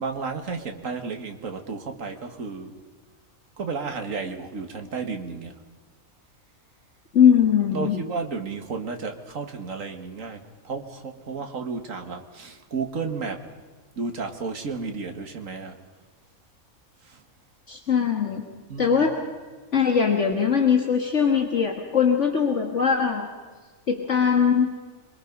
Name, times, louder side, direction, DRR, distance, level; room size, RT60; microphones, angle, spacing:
voice 1, 0.0-2.7 3.6-5.6 7.7-13.5 14.0-15.8 17.0-17.2 18.7-19.0, right 4 dB, 65° right, 5 dB, 2.2 m, -32 dB
voice 2, 7.1-8.0 17.7-18.5 18.8-19.3 19.7-23.3 23.9-24.8, left 7 dB, 55° left, 3 dB, 1.9 m, -21 dB
27.0 x 23.0 x 5.4 m, 1.4 s
omnidirectional pair, 1.5 m